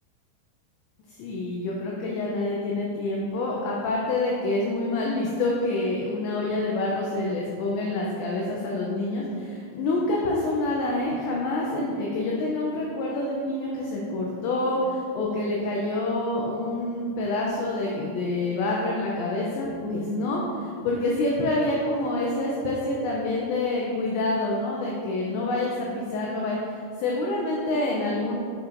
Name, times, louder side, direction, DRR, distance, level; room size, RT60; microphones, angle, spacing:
voice 1, 1.2-28.4, left 2 dB, 90° left, -3 dB, 2.5 m, -27 dB
7.4 x 7.1 x 2.5 m, 2.4 s
omnidirectional pair, 5.9 m